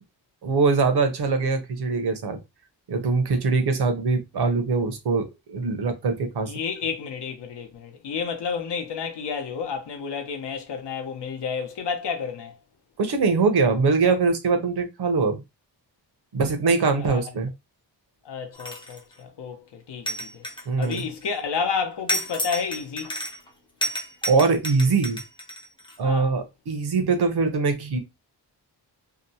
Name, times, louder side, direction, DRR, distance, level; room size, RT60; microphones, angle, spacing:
voice 1, 0.4-2.4 2.9-6.5 13.0-15.4 16.3-17.5 20.7-21.0 24.3-25.2 26.0-28.0, right 4 dB, 60° right, 0.7 m, -22 dB
voice 2, 6.5-12.6 17.0-17.2 18.2-20.4 20.8-23.2 26.0-26.3, left 6 dB, 70° left, 0.8 m, -31 dB
sound 1, 18.5-19.1 20.1-21.3 22.1-23.5 23.8-25.9, equal, 10° left, 0.4 m, -31 dB
2.8 x 2.0 x 2.7 m
wide cardioid pair, 135°, 44 cm